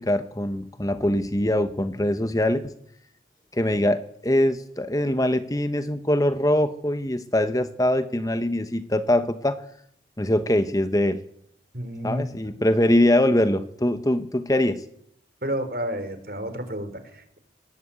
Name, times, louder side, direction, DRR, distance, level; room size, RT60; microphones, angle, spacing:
voice 1, 0.0-2.7 3.5-9.6 10.2-11.2 12.0-14.8, left 1 dB, 20° left, 10 dB, 1.0 m, -23 dB
voice 2, 11.7-12.3 15.4-17.4, equal, 55° right, 9 dB, 4.0 m, -31 dB
21.5 x 19.0 x 8.6 m, 0.71 s
head